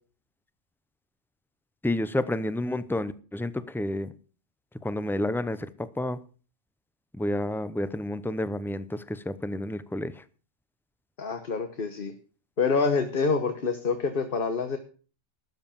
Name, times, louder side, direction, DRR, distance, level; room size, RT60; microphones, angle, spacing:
voice 1, 1.8-4.1 4.8-5.7 6.0-6.2 7.2-10.1, left 1 dB, 5° left, 0.3 m, -30 dB
voice 2, 11.2-12.1 12.6-14.8, left 4 dB, 45° left, 1.3 m, -26 dB
12.5 x 8.0 x 7.0 m
omnidirectional pair, 1.3 m